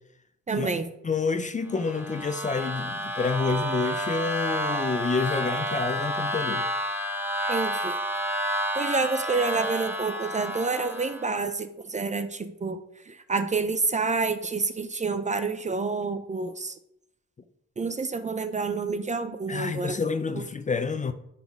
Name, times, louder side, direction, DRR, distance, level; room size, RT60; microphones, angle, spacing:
voice 1, 0.5-0.9 7.5-8.0 8.7-16.8 17.8-20.0 20.3-20.4, right 4 dB, 25° right, 0.5 m, -28 dB
voice 2, 1.0-6.7 19.5-21.1, left 4 dB, 25° left, 0.5 m, -28 dB
sound 1, 1.7-11.4, right 1 dB, 5° right, 0.9 m, -30 dB
10.0 x 4.1 x 3.5 m
cardioid pair, 90°, 30 cm